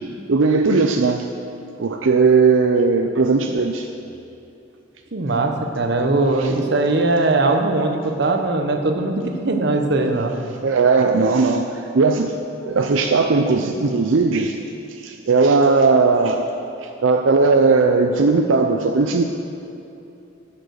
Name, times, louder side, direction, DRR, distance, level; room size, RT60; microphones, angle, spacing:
voice 1, 0.3-1.2 1.8-3.9 6.4-6.5 10.6-12.3 12.6-14.6 15.0-16.5 16.8-19.3, right 4 dB, 85° right, 4 dB, 0.5 m, -17 dB
voice 2, 5.1-10.4, right 2 dB, 60° right, 5 dB, 1.0 m, -20 dB
10.5 x 7.5 x 6.5 m, 2.8 s
head